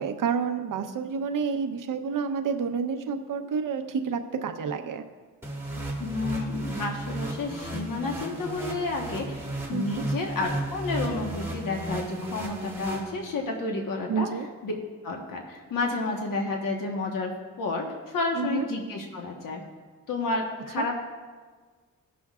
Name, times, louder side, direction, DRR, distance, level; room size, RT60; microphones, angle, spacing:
voice 1, 0.0-5.1 9.7-10.0 14.1-14.5 18.4-18.6 20.8-20.9, right 6 dB, 70° right, 6 dB, 0.9 m, -29 dB
sound 1, 5.4-13.6, right 1 dB, 5° right, 1.9 m, -34 dB
voice 2, 6.0-14.8 15.0-17.3 17.6-19.6 20.1-21.0, left 3 dB, 70° left, 1 dB, 1.3 m, -31 dB
18.5 x 6.2 x 2.4 m, 1.5 s
cardioid pair, 90°, 34 cm